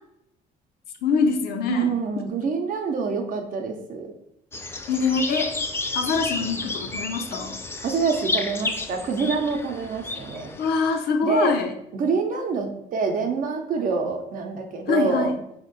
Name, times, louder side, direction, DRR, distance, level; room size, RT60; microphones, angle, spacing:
voice 1, 1.0-2.0 4.9-5.5 5.9-7.6 10.6-11.7 14.9-15.4, left 5 dB, 70° left, 6 dB, 0.5 m, -24 dB
voice 2, 1.7-4.1 7.8-10.5 11.2-11.5 11.9-15.3, right 5 dB, 55° right, 4 dB, 0.7 m, -26 dB
sound 1, 4.5-10.7, left 2 dB, 15° left, 0.3 m, -31 dB
2.9 x 2.6 x 3.9 m, 0.77 s
cardioid pair, 110°, 17 cm